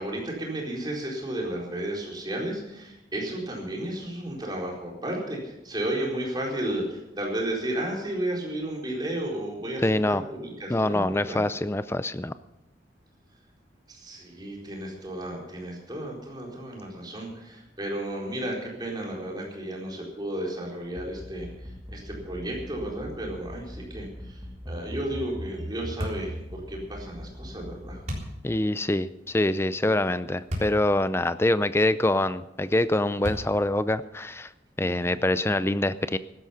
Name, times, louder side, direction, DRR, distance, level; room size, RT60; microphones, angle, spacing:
voice 1, 0.0-11.4 13.9-28.0 34.8-35.2, right 1 dB, 25° right, -2 dB, 4.2 m, -33 dB
voice 2, 9.8-10.2 10.7-12.3 28.4-34.5 34.8-36.2, left 1 dB, 15° left, 14 dB, 0.5 m, -25 dB
sound 1, 21.0-28.2, equal, 10° right, 1.6 m, -39 dB
sound 2, 26.0-26.3 28.1-28.4 30.5-30.8 31.4-31.5 33.2-33.7, equal, 40° right, 3.7 m, -32 dB
16.0 x 12.0 x 5.7 m, 0.89 s
head